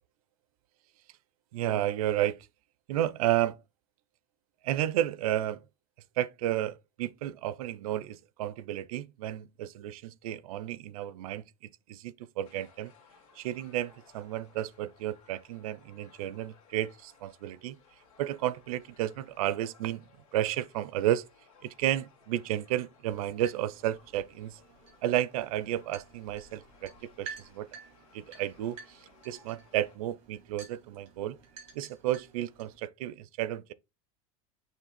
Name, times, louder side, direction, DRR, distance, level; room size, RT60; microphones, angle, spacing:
voice 1, 1.5-2.5 2.9-3.6 4.6-5.6 6.2-11.4 11.9-12.9 13.4-17.8 18.2-21.2 21.6-24.6 25.0-27.7 28.1-31.4 31.7-33.7, right 12 dB, 85° right, 0.6 m, -32 dB
sound 1, 12.4-30.0, left 5 dB, 80° left, 2.1 m, -61 dB
sound 2, 23.0-32.8, right 6 dB, 35° right, 3.6 m, -51 dB
7.3 x 3.3 x 4.2 m
supercardioid pair, 170°, 18 cm